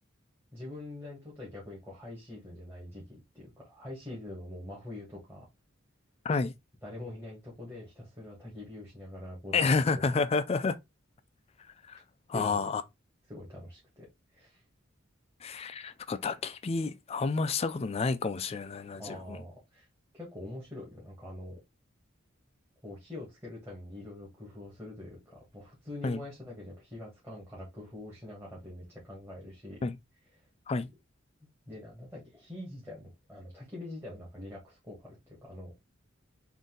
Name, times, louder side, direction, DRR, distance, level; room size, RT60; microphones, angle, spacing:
voice 1, 0.5-5.5 6.8-10.0 12.3-12.6 13.3-14.1 14.3-14.6 19.0-19.9 20.1-21.6 22.8-29.8 30.3-30.4 30.8-30.9 31.7-35.7, left 1 dB, 10° right, 1.5 m, -44 dB
voice 2, 9.5-10.7 11.9-12.0 12.3-12.8 15.4-19.4 26.0-26.2 29.8-29.9 30.7-30.9, left 4 dB, 30° left, 0.3 m, -30 dB
3.9 x 2.6 x 3.7 m
head